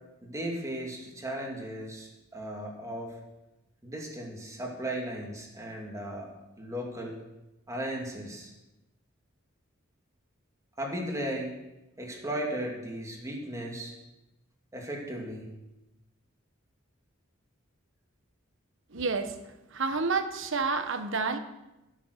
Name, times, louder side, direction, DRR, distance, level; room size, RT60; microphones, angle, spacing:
voice 1, 0.2-3.2 3.8-6.3 6.6-7.2 7.7-8.5 10.8-11.5 12.0-13.9 14.7-15.4, right 1 dB, 15° right, -1 dB, 2.6 m, -36 dB
voice 2, 18.9-19.3 19.7-21.4, right 4 dB, 65° right, 9 dB, 1.1 m, -29 dB
16.0 x 7.5 x 6.7 m, 0.98 s
head